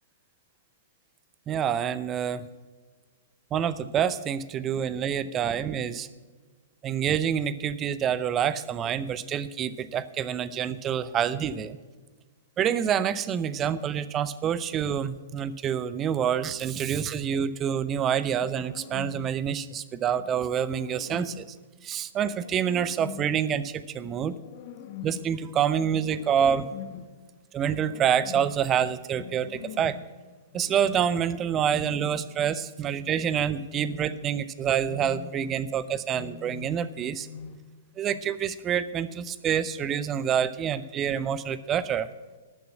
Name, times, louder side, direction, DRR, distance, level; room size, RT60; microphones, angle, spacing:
voice 1, 1.5-2.5 3.5-6.1 6.8-11.8 12.6-21.5 21.8-24.4 25.0-26.7 27.5-30.0 30.5-37.3 38.0-42.1, right 8 dB, 25° right, 16 dB, 0.6 m, -27 dB
sound 1, 18.6-19.4 20.2-21.5 22.2-23.4 24.0-25.4 25.9-27.2 27.6-28.7 29.1-30.1 30.5-31.1 31.6-32.5 32.8-33.3 33.6-34.4 34.8-35.7 36.1-36.9 37.2-37.8 38.1-38.2, left 8 dB, 40° left, 1.0 m, -43 dB
12.5 x 7.0 x 7.2 m, 1.4 s
figure-of-eight pair, 110°, 0 cm